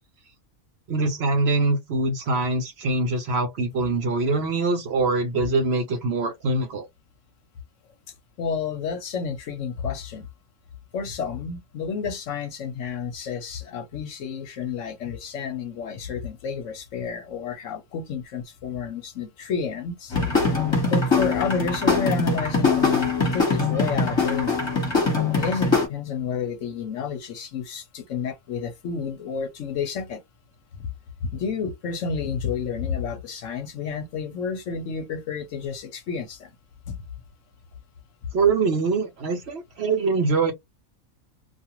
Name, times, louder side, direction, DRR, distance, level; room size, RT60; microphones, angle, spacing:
voice 1, 0.9-6.9 38.3-40.5, right 3 dB, 55° right, 0.8 m, -23 dB
voice 2, 8.4-10.3 10.9-20.4 20.9-24.6 25.3-30.2 31.2-36.5 36.9-37.0, left 6 dB, 65° left, 0.9 m, -30 dB
sound 1, 20.1-25.9, left 4 dB, 20° left, 1.1 m, -22 dB
2.4 x 2.4 x 2.9 m
omnidirectional pair, 1.5 m